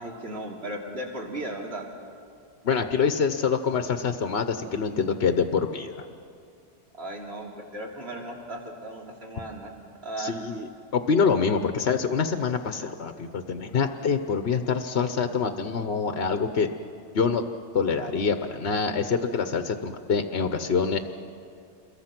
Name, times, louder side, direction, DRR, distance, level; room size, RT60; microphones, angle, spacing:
voice 1, 0.0-1.8 6.9-9.7 10.0-10.4, right 1 dB, 60° right, -1 dB, 3.3 m, -36 dB
voice 2, 2.6-6.0 10.2-16.7 17.1-17.4 17.7-21.0, left 5 dB, 60° left, 8 dB, 1.1 m, -25 dB
28.0 x 22.0 x 6.0 m, 2.3 s
omnidirectional pair, 1.2 m